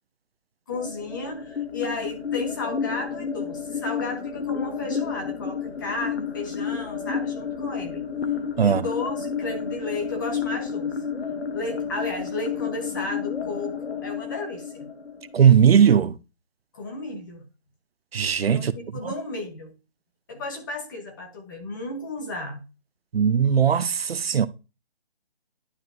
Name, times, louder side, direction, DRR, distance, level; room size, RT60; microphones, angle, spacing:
sound 1, 0.7-15.7, left 6 dB, 80° left, 1.2 m, -31 dB
voice 1, 0.7-8.0 8.6-11.0 11.5-14.9 16.7-17.4 18.5-19.7 20.3-22.6, left 2 dB, 20° left, 1.0 m, -33 dB
voice 2, 15.3-16.1 18.1-18.7 23.1-24.5, right 8 dB, 70° right, 0.7 m, -18 dB
11.5 x 4.7 x 2.7 m
hypercardioid pair, 170°, 31 cm